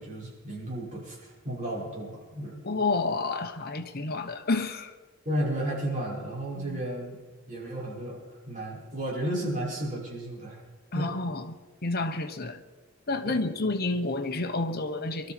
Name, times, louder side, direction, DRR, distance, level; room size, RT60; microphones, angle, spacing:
voice 1, 0.0-2.6 5.2-7.1 7.5-10.6 10.9-11.1 13.2-13.4, right 1 dB, 40° right, 6.1 m, -33 dB
voice 2, 2.6-4.9 6.5-6.8 10.9-11.5 11.8-12.6 13.1-15.3, left 3 dB, 50° left, 1.2 m, -30 dB
23.5 x 13.0 x 4.5 m
head